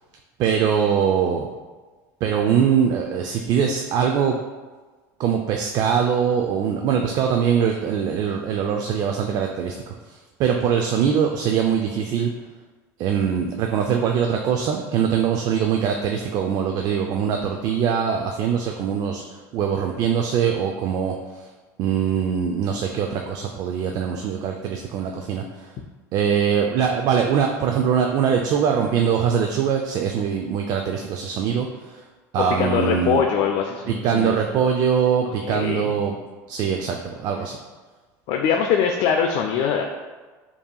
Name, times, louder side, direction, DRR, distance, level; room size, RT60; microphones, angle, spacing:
voice 1, 0.4-1.5 2.2-4.4 5.2-12.3 13.0-19.2 19.5-21.5 21.8-25.7 26.1-32.0 32.3-33.2 33.9-36.2 36.5-37.6, right 7 dB, 50° right, 2 dB, 0.3 m, -22 dB
voice 2, 32.4-34.4 35.3-35.9 38.3-39.8, left 7 dB, 60° left, 2 dB, 0.4 m, -22 dB
5.4 x 2.7 x 2.2 m, 1.3 s
supercardioid pair, 115°, 8 cm